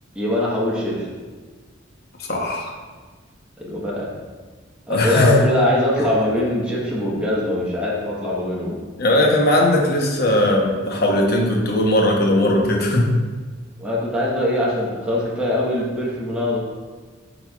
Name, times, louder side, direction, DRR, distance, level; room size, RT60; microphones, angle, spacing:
voice 1, 0.1-1.1 3.6-4.1 4.9-8.7 13.8-16.6, left 1 dB, 5° right, -6 dB, 1.1 m, -22 dB
voice 2, 2.3-2.7 4.9-5.3 9.0-13.1, left 1 dB, 50° left, 0 dB, 0.9 m, -18 dB
10.0 x 4.2 x 2.3 m, 1.4 s
head